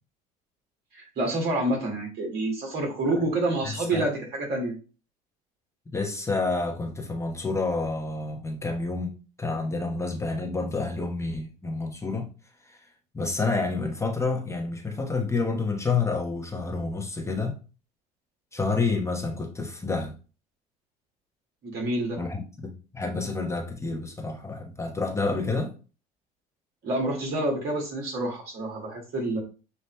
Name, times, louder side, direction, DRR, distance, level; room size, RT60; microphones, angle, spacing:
voice 1, 0.9-4.8 21.6-22.2 26.8-29.4, right 2 dB, 55° right, 2.1 m, -28 dB
voice 2, 3.6-4.1 5.9-9.1 9.4-12.3 13.1-17.6 18.5-20.1 22.2-25.7, left 3 dB, 15° left, 1.1 m, -29 dB
6.8 x 2.8 x 2.2 m
supercardioid pair, 75°, 19 cm